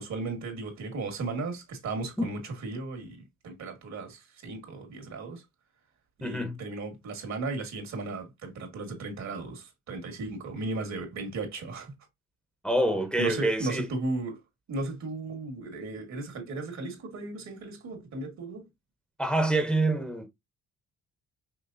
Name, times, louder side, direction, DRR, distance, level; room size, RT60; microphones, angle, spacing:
voice 1, 0.0-5.4 6.2-11.9 13.2-14.4 14.7-18.7, right 3 dB, 65° right, 1.9 m, -36 dB
voice 2, 6.2-6.6 12.6-13.9 19.2-20.3, right 1 dB, 5° left, 0.9 m, -26 dB
5.6 x 3.2 x 2.6 m
cardioid pair, 90°, 30 cm